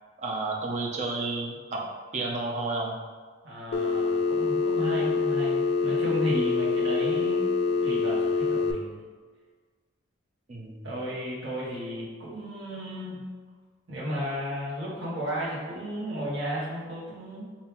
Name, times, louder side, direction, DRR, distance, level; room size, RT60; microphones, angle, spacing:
voice 1, 0.2-1.8 2.1-3.0 10.5-10.9, right 3 dB, 40° right, -1 dB, 0.5 m, -31 dB
voice 2, 3.4-9.0 10.8-13.2 13.9-17.4, equal, 65° right, -9 dB, 1.3 m, -34 dB
Telephone, 3.7-8.7, left 4 dB, 70° left, 0.3 m, -25 dB
3.5 x 2.7 x 2.9 m, 1.5 s
head